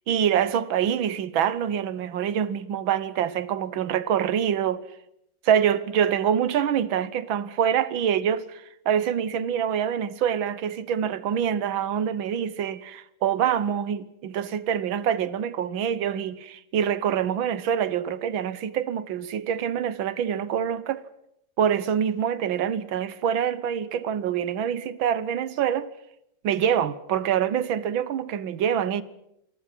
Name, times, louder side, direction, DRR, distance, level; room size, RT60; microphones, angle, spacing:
voice 1, 0.1-4.8 5.4-21.0 21.6-25.9 26.4-29.0, right 9 dB, 80° right, 1.8 m, -25 dB
27.0 x 19.5 x 7.7 m
omnidirectional pair, 2.2 m